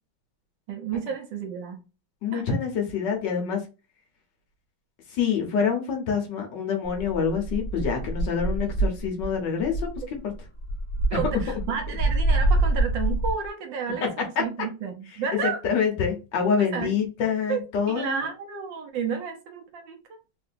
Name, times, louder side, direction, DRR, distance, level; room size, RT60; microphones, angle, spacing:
voice 1, 0.7-1.8 2.3-2.4 11.1-15.6 16.6-17.0 17.5-17.6 17.9-20.0, right 6 dB, 75° right, 1.2 m, -31 dB
voice 2, 2.2-3.6 5.1-10.3 11.1-11.2 14.4-14.5 15.6-18.3, left 6 dB, 65° left, 1.4 m, -26 dB
sound 1, 6.8-9.4 9.6-13.5, right 2 dB, 25° left, 1.0 m, -25 dB
3.6 x 2.6 x 2.5 m
omnidirectional pair, 2.3 m